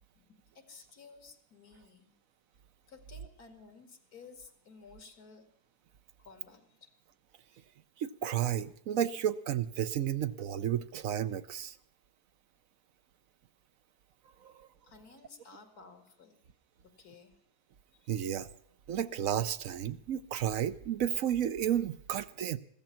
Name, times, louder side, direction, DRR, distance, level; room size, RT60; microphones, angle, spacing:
voice 1, 0.2-2.1 2.9-5.4 6.2-6.9 14.8-16.4 17.0-17.3 17.9-18.0, left 4 dB, 80° left, 8 dB, 2.6 m, -54 dB
voice 2, 8.0-11.8 14.4-14.7 18.1-18.5 18.9-22.6, right 10 dB, 65° right, 13 dB, 1.1 m, -32 dB
15.0 x 14.0 x 5.7 m, 0.67 s
omnidirectional pair, 1.6 m